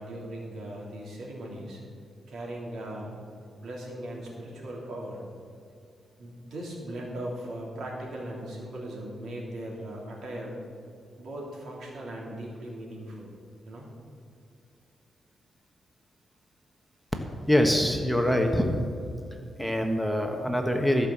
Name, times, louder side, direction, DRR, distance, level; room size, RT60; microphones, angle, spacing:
voice 1, 0.0-1.8 2.3-3.1 3.6-5.2 6.2-10.6 11.2-13.3 13.7-13.9, right 1 dB, 75° right, -3 dB, 3.0 m, -38 dB
voice 2, 17.5-18.8 19.6-21.1, equal, ahead, 3 dB, 1.1 m, -24 dB
14.0 x 5.6 x 7.3 m, 2.5 s
cardioid pair, 95°, 0 cm